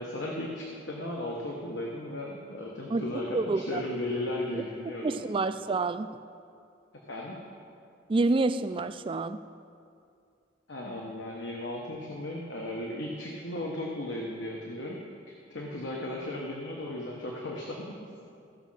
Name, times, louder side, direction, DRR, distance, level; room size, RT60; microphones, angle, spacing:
voice 1, 0.0-5.2 7.1-7.4 10.7-15.0 15.5-18.0, left 1 dB, 80° left, -1 dB, 1.2 m, -35 dB
voice 2, 3.3-3.8 4.5-6.1 8.1-9.4, right 3 dB, 30° right, 11 dB, 0.3 m, -28 dB
15.5 x 6.2 x 5.6 m, 2.4 s
head